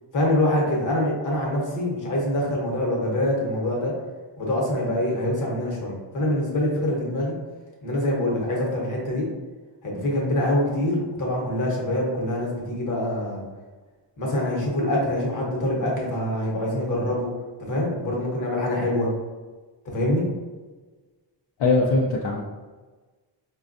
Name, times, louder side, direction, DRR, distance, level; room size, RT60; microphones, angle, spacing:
voice 1, 0.1-3.9 4.4-7.3 7.8-9.3 9.8-13.4 14.2-17.3 17.7-19.1 19.9-20.2, left 1 dB, 45° left, -2 dB, 1.0 m, -25 dB
voice 2, 21.6-22.4, left 3 dB, 70° left, -3 dB, 0.6 m, -21 dB
5.0 x 2.3 x 2.5 m, 1.3 s
wide cardioid pair, 170°, 44 cm